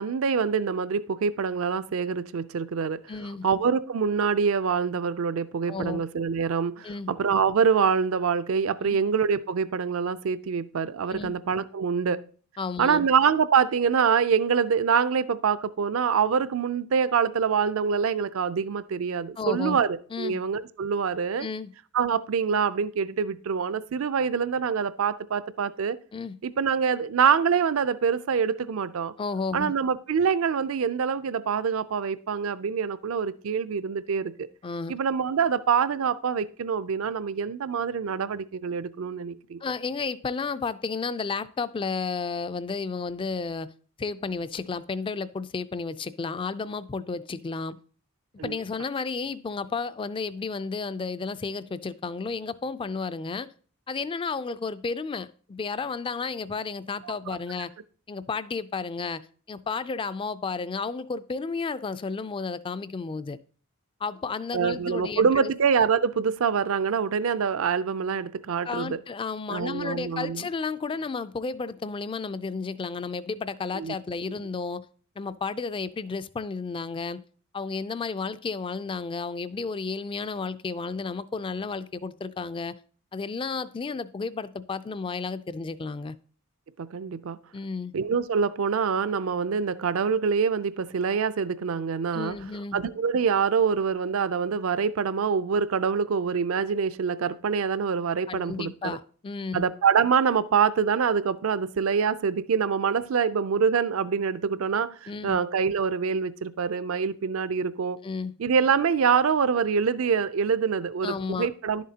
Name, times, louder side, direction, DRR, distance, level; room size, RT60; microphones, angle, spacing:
voice 1, 0.0-3.0 3.4-12.2 12.8-21.5 21.9-26.0 26.4-29.1 29.5-34.5 34.9-39.6 48.4-48.5 57.0-57.4 64.5-69.0 69.5-70.5 73.7-73.9 86.8-87.4 87.9-92.4 92.7-99.0 99.5-108.0 108.4-111.8, right 6 dB, 65° right, 0.4 m, -25 dB
voice 2, 3.1-3.4 5.7-6.0 6.8-7.1 8.8-9.0 11.1-11.4 12.6-13.0 19.4-19.8 20.1-20.4 21.4-21.7 26.1-26.3 29.2-29.7 34.6-34.9 39.6-43.7 44.0-47.7 48.4-53.5 53.9-57.7 58.1-59.2 59.5-63.4 64.0-65.5 68.6-74.8 75.2-77.2 77.5-82.8 83.1-86.2 87.5-87.9 92.1-92.8 98.3-99.7 105.1-105.4 108.0-108.3 111.0-111.5, left 4 dB, 25° left, 0.3 m, -32 dB
11.0 x 7.3 x 2.8 m
head